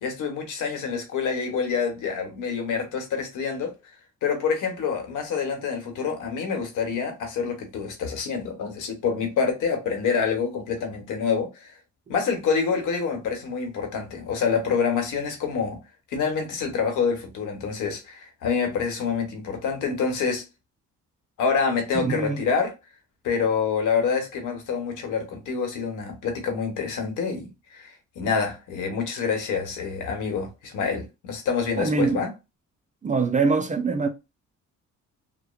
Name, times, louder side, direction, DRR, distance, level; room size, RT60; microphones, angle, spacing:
voice 1, 0.0-3.7 4.2-11.8 12.1-15.8 16.1-20.4 21.4-22.7 23.2-32.3, left 6 dB, 85° left, 1.0 m, -27 dB
voice 2, 22.0-22.4 31.8-32.2 33.0-34.1, right 4 dB, 25° right, 0.4 m, -23 dB
3.0 x 2.1 x 2.2 m
cardioid pair, 90°, 30 cm